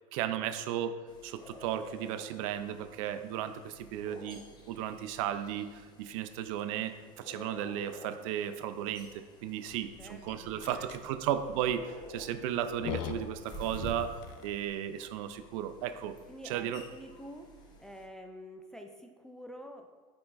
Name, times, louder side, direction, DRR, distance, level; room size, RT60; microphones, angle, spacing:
voice 1, 0.1-4.4 4.7-16.2 16.4-16.8, right 10 dB, 65° right, 10 dB, 0.5 m, -35 dB
sound 1, 1.1-18.1, left 1 dB, 25° left, 1.0 m, -50 dB
sound 2, 9.7-14.7, left 8 dB, 60° left, 0.5 m, -44 dB
voice 2, 10.0-11.2 16.3-17.5 17.8-20.0, equal, 5° left, 4 dB, 0.4 m, -48 dB
8.3 x 4.7 x 2.5 m, 1.4 s
supercardioid pair, 120°, 18 cm